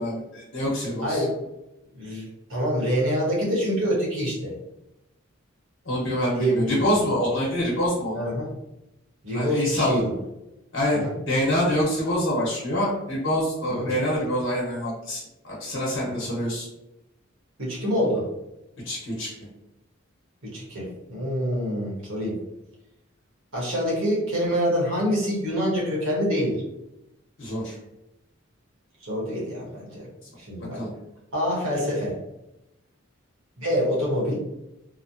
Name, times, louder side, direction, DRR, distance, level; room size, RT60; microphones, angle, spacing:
voice 1, 0.0-1.2 5.8-8.2 9.3-10.0 10.7-16.7 18.8-19.3 27.4-27.7 30.7-30.9, equal, 65° left, -5 dB, 0.9 m, -26 dB
voice 2, 1.0-1.4 2.0-4.5 6.4-7.1 8.1-8.5 9.2-10.1 10.9-11.1 13.7-13.9 16.0-16.2 17.6-18.3 20.5-22.4 23.5-26.6 29.0-30.1 30.4-30.8 31.3-32.1 33.6-34.4, equal, 75° right, -4 dB, 1.3 m, -26 dB
3.1 x 2.1 x 2.7 m, 0.91 s
head